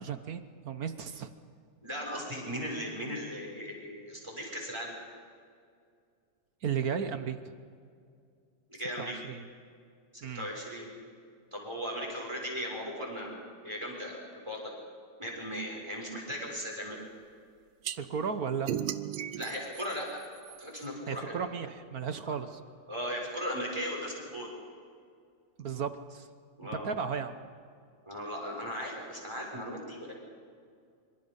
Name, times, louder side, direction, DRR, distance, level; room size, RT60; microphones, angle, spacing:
voice 1, 0.0-1.3 6.6-7.4 9.0-9.4 10.2-10.5 18.0-18.7 21.1-22.6 25.6-26.3 26.7-27.4, right 6 dB, 55° right, 9 dB, 1.4 m, -34 dB
voice 2, 1.8-4.9 8.7-9.2 10.3-10.9 11.5-14.6 15.2-17.0 19.3-20.2 20.6-21.4 22.3-22.4 22.9-24.5 26.6-26.9 28.0-30.2, equal, 15° right, -2 dB, 6.6 m, -37 dB
sound 1, 17.8-18.0 18.7-20.9, right 11 dB, 80° right, 1.7 m, -36 dB
26.0 x 25.5 x 5.5 m, 2.2 s
omnidirectional pair, 2.2 m